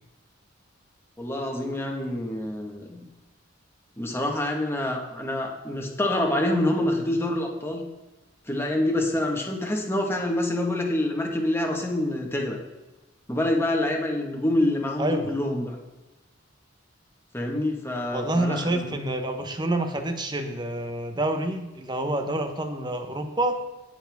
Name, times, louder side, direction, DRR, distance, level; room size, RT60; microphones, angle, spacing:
voice 1, 1.2-3.0 4.0-7.8 8.5-12.6 13.3-15.8 17.3-18.9, left 1 dB, 10° left, 1 dB, 1.6 m, -26 dB
voice 2, 15.0-15.3 18.1-23.6, right 1 dB, 20° right, 6 dB, 1.1 m, -27 dB
18.5 x 7.0 x 3.6 m, 1.1 s
head